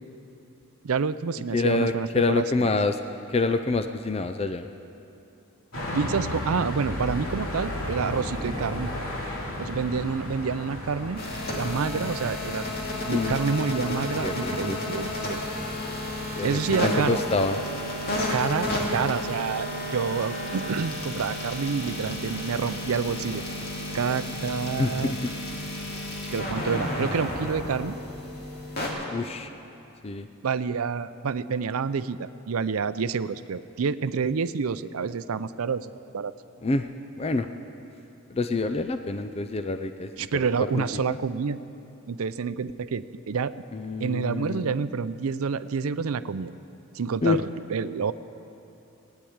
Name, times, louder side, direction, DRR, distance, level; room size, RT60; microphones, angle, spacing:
voice 1, 0.8-2.7 5.9-8.9 9.6-11.2 11.5-12.7 13.1-15.4 16.4-17.2 18.3-23.4 23.9-25.1 26.3-28.0 30.4-36.3 40.2-41.6 42.1-43.5 44.0-46.5 46.9-48.1, right 5 dB, 75° right, 14 dB, 0.5 m, -28 dB
voice 2, 1.5-3.0 3.3-4.7 13.1-13.4 13.9-14.0 14.2-14.8 16.4-17.6 24.8-25.2 29.1-29.5 30.0-30.3 36.6-36.9 37.2-37.5 38.3-40.5 40.7-40.8 43.7-44.7 47.2-47.4, left 3 dB, 25° left, 8 dB, 0.4 m, -27 dB
sound 1, 5.7-17.4, left 1 dB, 70° left, 2.9 m, -35 dB
sound 2, 11.2-28.9, left 1 dB, 45° left, 2.3 m, -32 dB
17.0 x 9.9 x 8.7 m, 2.8 s
head